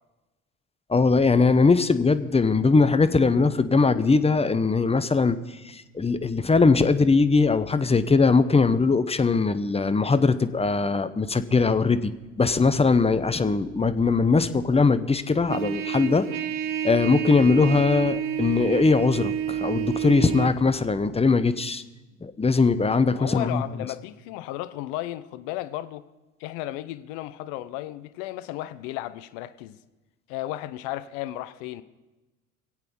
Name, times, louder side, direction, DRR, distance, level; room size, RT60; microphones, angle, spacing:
voice 1, 0.9-5.4 5.6-12.1 12.4-16.3 16.8-21.8 22.2-23.6, left 4 dB, 15° left, 1.0 m, -21 dB
Trumpet, 15.5-20.5, right 10 dB, 55° right, 1.3 m, -29 dB
voice 2, 23.1-26.0 26.4-29.8 30.3-31.8, left 15 dB, 65° left, 0.9 m, -34 dB
23.5 x 8.2 x 5.4 m
hypercardioid pair, 65°, 39 cm